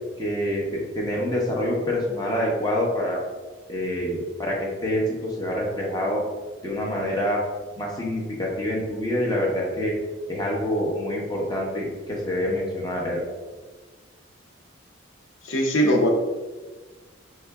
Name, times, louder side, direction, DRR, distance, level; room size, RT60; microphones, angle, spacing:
voice 1, 0.2-3.2 3.7-6.2 6.6-7.4 7.8-9.9 10.3-13.3, left 1 dB, 20° left, -2 dB, 0.7 m, -26 dB
voice 2, 15.4-16.1, equal, 85° left, 1 dB, 0.7 m, -20 dB
4.6 x 2.5 x 3.3 m, 1.3 s
head